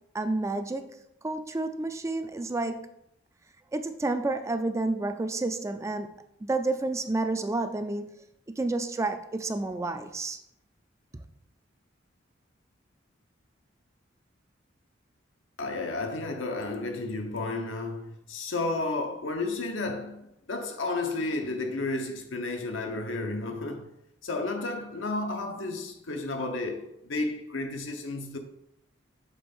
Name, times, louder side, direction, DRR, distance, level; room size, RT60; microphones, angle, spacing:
voice 1, 0.1-2.9 3.7-6.1 6.4-8.1 8.6-10.4 11.1-11.3, right 2 dB, 15° right, 0.4 m, -30 dB
voice 2, 15.6-23.9 24.2-28.4, left 2 dB, 90° left, 0.9 m, -32 dB
6.1 x 3.4 x 5.3 m
head